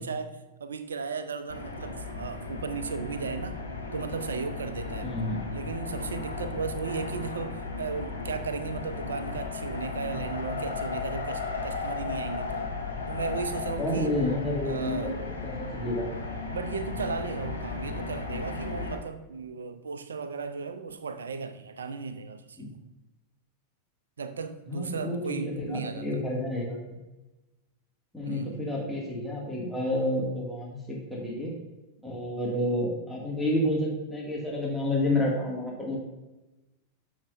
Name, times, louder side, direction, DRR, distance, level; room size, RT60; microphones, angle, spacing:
voice 1, 0.0-3.6 3.9-5.1 5.5-12.6 13.1-14.1 14.6-15.2 16.1-22.8 24.2-26.1 28.2-28.7, right 5 dB, 70° right, 10 dB, 0.6 m, -35 dB
sound 1, 1.5-19.0, left 4 dB, 80° left, 1.2 m, -35 dB
voice 2, 5.0-5.4 13.8-15.2 15.4-16.1 22.6-22.7 24.7-27.0 28.1-31.5 32.0-36.0, left 1 dB, 5° left, -5 dB, 2.1 m, -30 dB
13.0 x 6.0 x 2.6 m, 1.1 s
figure-of-eight pair, 90°, 0 cm